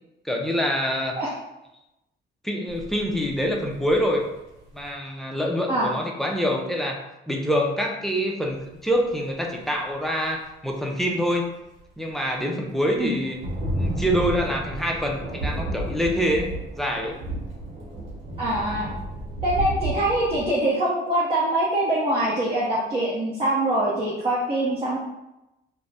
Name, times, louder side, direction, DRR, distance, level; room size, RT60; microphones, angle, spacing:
voice 1, 0.2-1.2 2.4-4.3 4.7-7.0 7.3-11.5 12.0-13.4 13.8-17.2, equal, ahead, 0 dB, 0.4 m, -25 dB
sound 1, 2.7-4.9 8.5-8.9 9.4-9.7 10.9-11.0 11.8-11.9 12.1-12.4 13.0-20.5, right 1 dB, 70° right, 1.0 m, -32 dB
voice 2, 18.4-18.9 19.4-25.0, right 1 dB, 30° right, -6 dB, 0.7 m, -24 dB
2.4 x 2.1 x 3.3 m, 0.94 s
cardioid pair, 90°, 20 cm